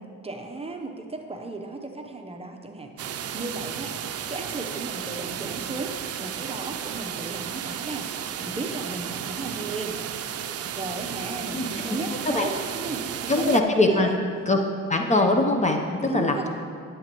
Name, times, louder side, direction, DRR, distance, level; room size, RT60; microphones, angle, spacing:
voice 1, 0.2-1.8 2.1-2.9 3.3-3.9 4.3-5.9 6.2-8.1 8.4-10.0 10.7-13.6 13.9-14.2 16.0-16.5, right 3 dB, 20° right, 3 dB, 0.8 m, -34 dB
sound 1, 3.0-13.6, right 9 dB, 55° right, 0.5 m, -33 dB
voice 2, 11.5-12.0 12.2-12.5 13.3-14.6 14.9-16.5, left 2 dB, 25° left, 3 dB, 0.7 m, -22 dB
12.0 x 8.0 x 3.0 m, 2.2 s
cardioid pair, 90°, 30 cm